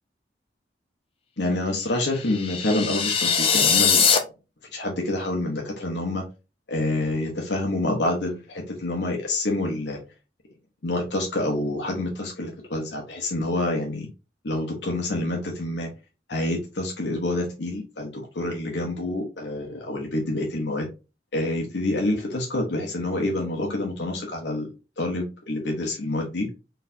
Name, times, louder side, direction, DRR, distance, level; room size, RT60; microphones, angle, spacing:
voice 1, 1.4-4.1 4.7-6.2 6.7-10.0 10.8-14.1 14.4-15.9 16.3-20.9 21.3-24.7 25.0-26.5, left 2 dB, 80° left, 0 dB, 1.0 m, -27 dB
sound 1, 2.2-4.2, left 6 dB, 35° left, 0.6 m, -21 dB
4.1 x 3.3 x 2.7 m, 0.30 s
head